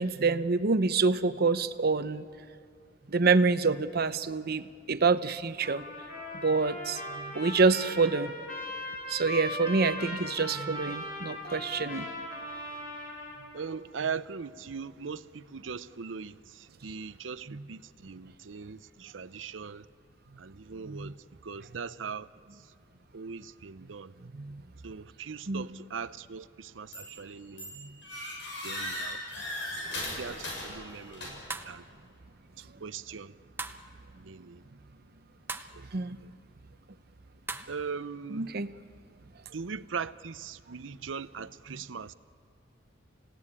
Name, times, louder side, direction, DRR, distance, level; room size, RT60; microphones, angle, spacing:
voice 1, 0.0-2.2 3.1-5.8 6.4-8.3 9.1-12.1 17.5-17.6 20.9-21.1 24.3-24.6 25.5-25.7 27.8-27.9 35.9-36.2 38.3-38.7 41.7-41.8, right 4 dB, 55° right, 0.8 m, -27 dB
Trumpet, 5.6-13.6, left 1 dB, 50° left, 4.4 m, -39 dB
voice 2, 13.5-19.9 20.4-21.2 21.4-22.6 23.1-24.1 24.8-27.8 28.6-29.2 30.2-31.3 31.6-31.8 32.6-33.3 34.2-34.6 35.7-35.9 36.2-36.3 37.7-38.5 39.5-42.1, right 5 dB, 85° right, 0.7 m, -40 dB
sound 1, 26.9-27.3 27.6-31.6, left 1 dB, 80° left, 7.3 m, -38 dB
sound 2, 31.5-31.8 33.6-33.9 35.5-35.7 37.5-37.7, right 3 dB, 10° right, 1.0 m, -38 dB
30.0 x 16.5 x 9.8 m
head